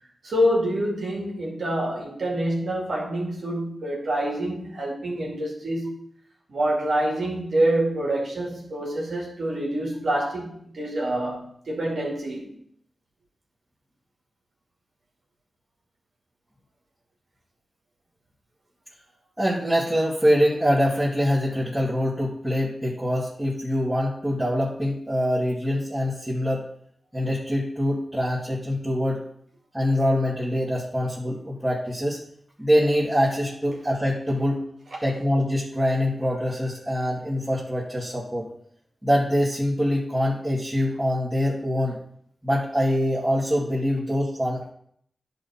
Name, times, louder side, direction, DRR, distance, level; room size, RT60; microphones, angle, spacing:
voice 1, 0.2-5.9 6.5-12.5 34.9-35.0, right 1 dB, 75° right, -3 dB, 2.4 m, -26 dB
voice 2, 19.4-26.6 27.1-29.2 29.7-32.2 32.6-34.6 35.0-38.5 39.0-42.0 42.4-44.7, equal, 15° right, -8 dB, 2.5 m, -24 dB
11.0 x 4.1 x 4.3 m, 0.66 s
cardioid pair, 45°, 0 cm